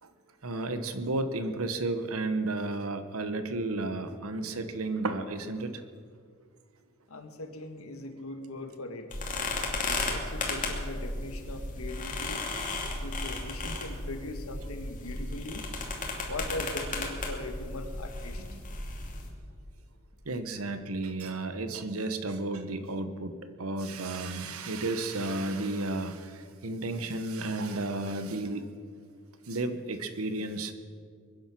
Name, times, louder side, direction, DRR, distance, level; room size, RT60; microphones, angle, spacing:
voice 1, 0.4-5.8 18.5-18.6 20.2-23.3 23.6-28.7 29.5-30.7, right 2 dB, 85° right, 9 dB, 1.2 m, -32 dB
voice 2, 7.1-9.1 9.9-12.5 13.0-15.7 16.3-18.6, left 2 dB, 80° left, 6 dB, 1.7 m, -40 dB
sound 1, 9.1-19.3, left 2 dB, 40° left, 2.6 m, -34 dB
22.5 x 10.5 x 6.2 m, 2.1 s
head